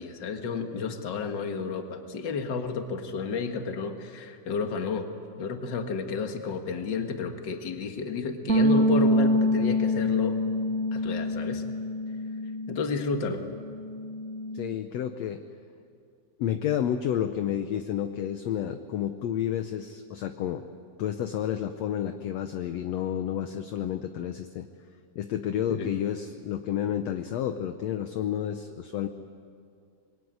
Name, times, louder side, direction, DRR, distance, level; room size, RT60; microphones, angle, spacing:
voice 1, 0.0-5.1 5.4-10.4 10.9-11.6 12.7-13.4 25.7-25.9, left 5 dB, 40° left, 5 dB, 1.9 m, -31 dB
sound 1, 8.5-13.1 13.3-14.7, left 1 dB, 75° right, 0.7 m, -26 dB
voice 2, 14.5-15.4 16.4-20.6 21.0-24.7 25.2-29.1, left 10 dB, 70° left, 7 dB, 1.7 m, -30 dB
26.0 x 22.5 x 9.6 m, 2.3 s
omnidirectional pair, 3.8 m